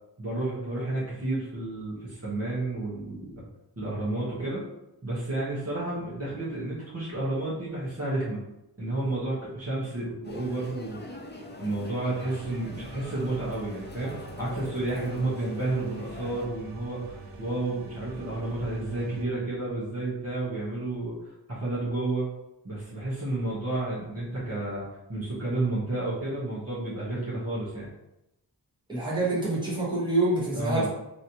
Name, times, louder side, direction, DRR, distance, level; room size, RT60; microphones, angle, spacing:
voice 1, 0.2-3.5 3.8-4.6 5.0-8.4 8.8-11.1 11.6-14.1 14.4-21.2 21.5-22.3 22.6-24.8 25.1-27.9 30.5-30.9, right 2 dB, 35° right, -9 dB, 1.1 m, -31 dB
sound 1, 10.2-16.5, left 2 dB, 25° left, 0.4 m, -43 dB
sound 2, 12.2-19.2, right 3 dB, 80° right, 0.6 m, -45 dB
voice 2, 28.9-30.9, right 2 dB, 10° right, -8 dB, 1.3 m, -26 dB
3.1 x 2.7 x 2.8 m, 0.90 s
wide cardioid pair, 65°, 42 cm